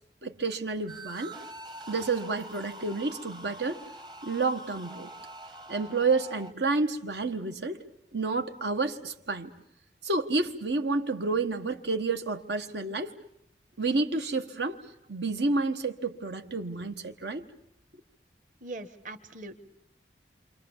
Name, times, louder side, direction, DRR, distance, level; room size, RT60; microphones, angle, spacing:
voice 1, 0.2-1.3 1.9-3.8 4.2-5.1 5.7-7.8 8.1-9.5 10.0-13.1 13.8-14.8 15.1-17.4, right 3 dB, 80° right, 1.5 m, -30 dB
sound 1, 0.9-6.5, right 1 dB, 25° right, 1.0 m, -45 dB
voice 2, 18.6-19.6, right 2 dB, 45° right, 1.6 m, -41 dB
28.5 x 26.0 x 7.3 m
head